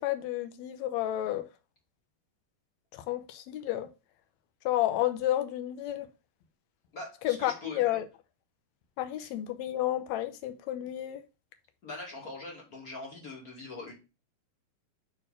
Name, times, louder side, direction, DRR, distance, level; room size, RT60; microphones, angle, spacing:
voice 1, 0.0-1.5 3.1-3.9 4.7-6.1 7.2-8.1 9.0-11.2, left 13 dB, 80° left, 1.6 m, -31 dB
voice 2, 6.9-7.9 9.2-9.3 11.8-13.9, left 2 dB, 30° left, 2.3 m, -42 dB
6.3 x 4.5 x 5.1 m
omnidirectional pair, 4.1 m